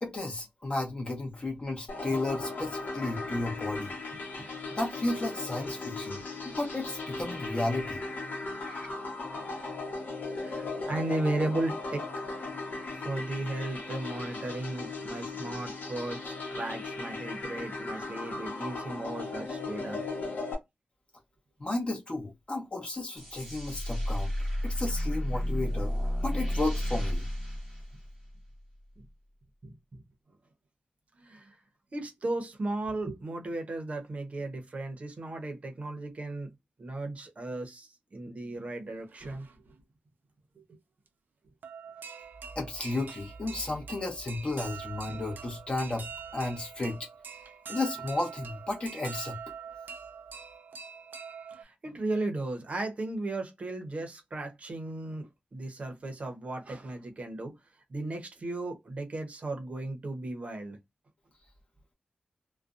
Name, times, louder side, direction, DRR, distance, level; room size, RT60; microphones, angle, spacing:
voice 1, 0.0-3.9 4.7-8.0 8.6-8.9 21.6-24.3 24.6-25.9 26.2-27.3 42.6-47.0 47.7-49.4, left 2 dB, 35° left, 0.8 m, -33 dB
sound 1, 1.9-20.5, left 3 dB, 70° left, 0.9 m, -37 dB
voice 2, 10.4-12.0 12.9-20.1 29.0-29.1 29.6-30.0 31.2-31.6 31.9-36.5 36.8-39.5 40.6-40.8 51.5-57.5 57.9-60.8, right 2 dB, 45° right, 0.7 m, -35 dB
sound 2, 23.2-28.5, equal, 5° left, 1.3 m, -32 dB
sound 3, 38.6-38.7 39.0-39.7 41.1-41.2 41.6-51.6, right 6 dB, 80° right, 0.4 m, -44 dB
2.5 x 2.1 x 2.4 m
wide cardioid pair, 175°, 3 cm